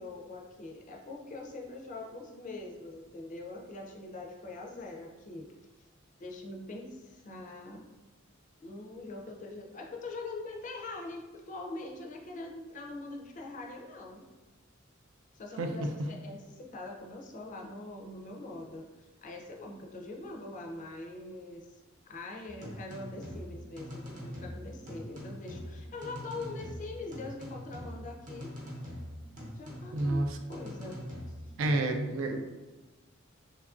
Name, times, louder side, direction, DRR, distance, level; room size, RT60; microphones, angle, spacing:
voice 1, 0.0-5.5 6.2-7.8 8.6-14.3 15.3-28.5 29.6-31.0, left 2 dB, 40° left, 1 dB, 0.4 m, -43 dB
voice 2, 15.6-16.1 29.9-30.4 31.6-32.4, right 2 dB, 75° right, 5 dB, 0.4 m, -30 dB
sound 1, 22.5-31.7, equal, 40° right, 0.6 m, -43 dB
2.9 x 2.4 x 2.4 m, 1.1 s
head